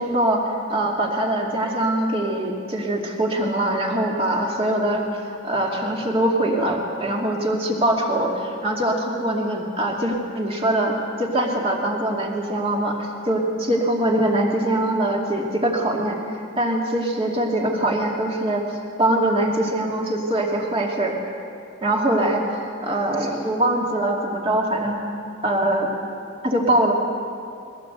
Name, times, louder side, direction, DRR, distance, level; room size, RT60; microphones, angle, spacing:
voice 1, 0.0-21.2 21.8-25.0 25.4-25.9 26.4-26.9, right 1 dB, 30° right, -1 dB, 2.6 m, -23 dB
22.0 x 17.5 x 8.1 m, 2.6 s
head